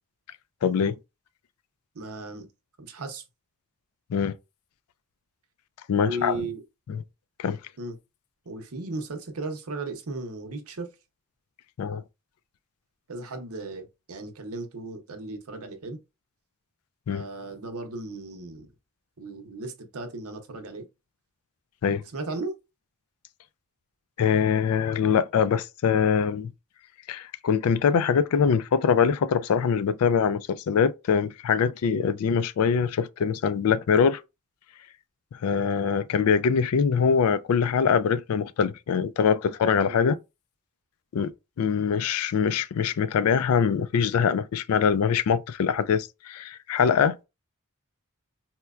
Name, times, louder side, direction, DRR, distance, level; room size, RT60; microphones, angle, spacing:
voice 1, 0.6-1.0 4.1-4.3 5.9-6.4 6.9-7.0 7.4-7.6 11.8-12.0 17.1-17.3 21.8-22.0 24.2-26.5 27.1-34.2 35.3-40.2 41.1-41.3 41.6-47.2, left 6 dB, 70° left, 0.3 m, -23 dB
voice 2, 1.9-2.5 2.8-3.2 5.9-6.6 7.8-8.0 8.5-10.9 13.1-16.0 17.1-18.7 19.2-20.9 22.1-22.5 39.9-40.0, right 2 dB, 75° right, 0.7 m, -36 dB
4.3 x 2.1 x 2.3 m
head